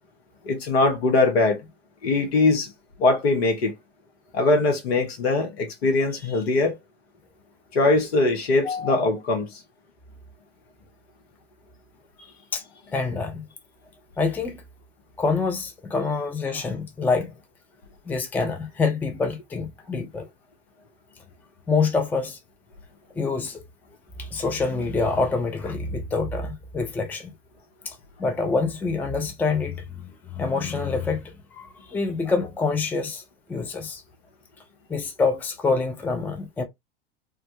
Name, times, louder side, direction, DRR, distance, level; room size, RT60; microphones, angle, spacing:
voice 1, 0.4-1.6 2.0-2.7 3.0-3.8 4.3-6.7 7.7-9.5, left 2 dB, 70° left, 1.0 m, -21 dB
voice 2, 8.6-9.0 12.5-12.6 12.9-13.4 14.2-14.6 15.2-17.3 18.1-20.3 21.7-22.4 23.2-23.6 24.2-27.3 27.9-33.2 33.5-34.0 34.9-36.6, left 4 dB, 5° left, 0.4 m, -26 dB
2.3 x 2.2 x 2.8 m
hypercardioid pair, 90°, 32 cm